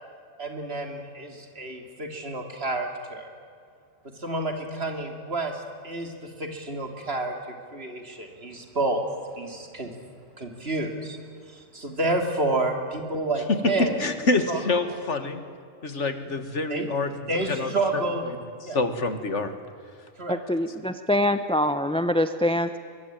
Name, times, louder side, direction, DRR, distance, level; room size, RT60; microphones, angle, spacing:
voice 1, 0.4-3.3 4.2-9.0 9.4-9.9 10.4-11.2 11.4-13.9 14.5-14.9 16.7-16.9 17.3-18.3 18.6-18.8 20.2-20.4, right 2 dB, 60° right, 4 dB, 3.2 m, -29 dB
voice 2, 13.5-15.4 15.8-17.1 17.5-18.0 18.7-19.6, left 3 dB, 75° left, 9 dB, 2.1 m, -26 dB
voice 3, 20.3-22.8, left 1 dB, 5° left, 10 dB, 0.7 m, -24 dB
24.0 x 22.0 x 9.0 m, 2.3 s
omnidirectional pair, 1.2 m